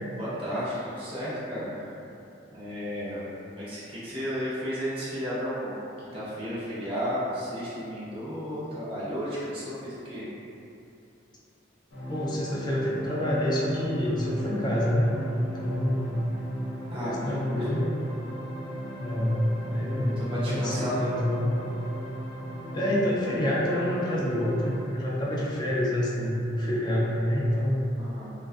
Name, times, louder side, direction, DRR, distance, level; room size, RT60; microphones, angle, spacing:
voice 1, 0.2-1.8 2.5-5.7 6.1-10.2 16.9-17.8 19.9-21.0 28.0-28.3, equal, 30° right, -10 dB, 0.5 m, -33 dB
sound 1, 11.9-24.8, equal, 85° left, 0.6 m, -37 dB
voice 2, 12.1-16.2 16.9-17.8 19.0-21.5 22.7-27.8, equal, 25° left, -5 dB, 0.3 m, -27 dB
2.3 x 2.1 x 2.4 m, 2.7 s
head